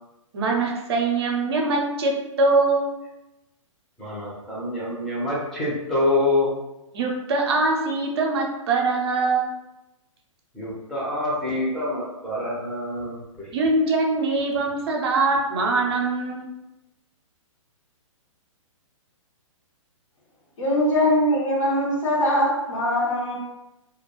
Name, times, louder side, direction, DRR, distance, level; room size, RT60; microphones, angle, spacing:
voice 1, 0.3-2.1 2.4-2.9 6.9-9.5 13.5-16.5, right 3 dB, 50° right, 0 dB, 0.6 m, -22 dB
voice 2, 4.0-6.5 10.5-13.2, left 2 dB, ahead, -7 dB, 0.7 m, -26 dB
voice 3, 20.6-23.3, left 1 dB, 65° left, -5 dB, 1.1 m, -22 dB
2.3 x 2.2 x 3.0 m, 0.95 s
figure-of-eight pair, 125°, 17 cm